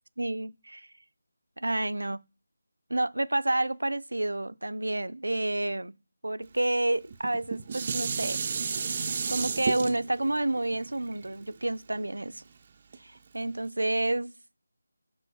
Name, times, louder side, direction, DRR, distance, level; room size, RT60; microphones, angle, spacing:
voice 1, 0.2-0.9 1.6-2.2 2.9-5.9 6.2-8.4 8.8-12.4 13.0-14.3, right 1 dB, 90° right, 0.4 m, -29 dB
Dishes pots and pans, 7.1-12.4 12.9-13.0, right 5 dB, 35° right, 0.4 m, -33 dB
6.3 x 4.4 x 4.2 m
figure-of-eight pair, 165°, 0 cm